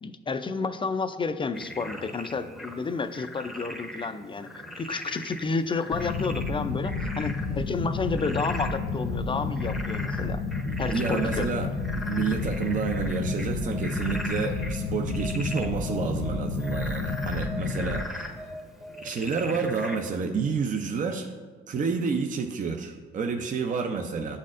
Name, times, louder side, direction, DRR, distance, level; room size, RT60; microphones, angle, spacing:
voice 1, 0.0-10.4 10.8-11.5 17.8-17.9, left 4 dB, 25° left, 10 dB, 0.4 m, -31 dB
Frog, 1.5-20.2, left 1 dB, ahead, 0.7 m, -40 dB
sound 1, 5.9-18.0, left 4 dB, 75° left, 0.6 m, -31 dB
voice 2, 10.7-18.3 19.0-21.3 21.7-24.4, right 5 dB, 40° right, 4 dB, 0.5 m, -29 dB
11.5 x 4.2 x 2.5 m, 1.4 s
cardioid pair, 90°, 20 cm